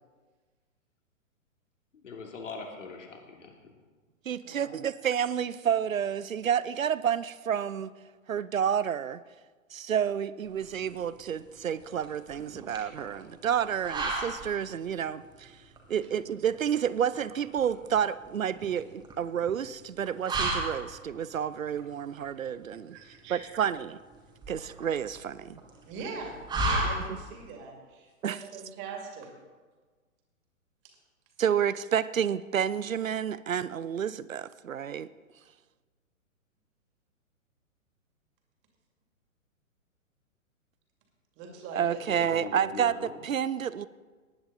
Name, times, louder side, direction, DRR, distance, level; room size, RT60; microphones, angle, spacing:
voice 1, 1.9-3.7 42.1-43.2, left 4 dB, 60° left, 1 dB, 2.9 m, -41 dB
voice 2, 4.3-7.9 8.3-9.2 9.7-15.6 15.9-23.0 23.3-24.0 24.5-25.6 27.1-27.2 28.2-28.4 31.4-35.1 41.7-43.9, right 8 dB, 70° right, 17 dB, 0.7 m, -30 dB
sound 1, 10.5-27.5, right 2 dB, 10° right, 1.6 m, -36 dB
voice 3, 22.9-23.4 25.8-29.3 41.4-42.0, right 5 dB, 25° right, 2 dB, 2.6 m, -42 dB
18.5 x 10.0 x 4.1 m, 1.4 s
figure-of-eight pair, 115°, 41 cm